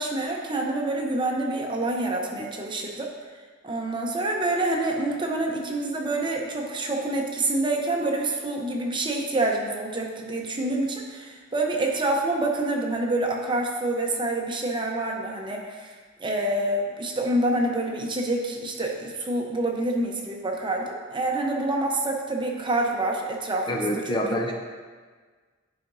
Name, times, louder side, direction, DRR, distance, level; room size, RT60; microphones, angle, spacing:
voice 1, 0.0-3.1 3.6-15.9 16.2-23.8, right 2 dB, 25° right, 0 dB, 0.8 m, -27 dB
voice 2, 23.7-24.5, equal, 25° left, 0 dB, 0.6 m, -26 dB
11.0 x 5.1 x 2.6 m, 1.5 s
head